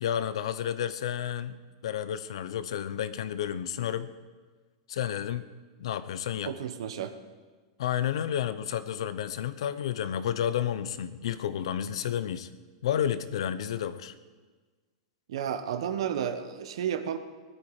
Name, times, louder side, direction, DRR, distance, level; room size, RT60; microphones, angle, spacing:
voice 1, 0.0-4.1 4.9-5.4 5.8-6.5 7.8-12.5 12.8-14.1, left 9 dB, 75° left, 13 dB, 0.9 m, -31 dB
voice 2, 6.4-7.2 15.3-17.2, right 9 dB, 75° right, 9 dB, 1.3 m, -32 dB
19.5 x 12.0 x 5.0 m, 1.4 s
supercardioid pair, 155°, 3 cm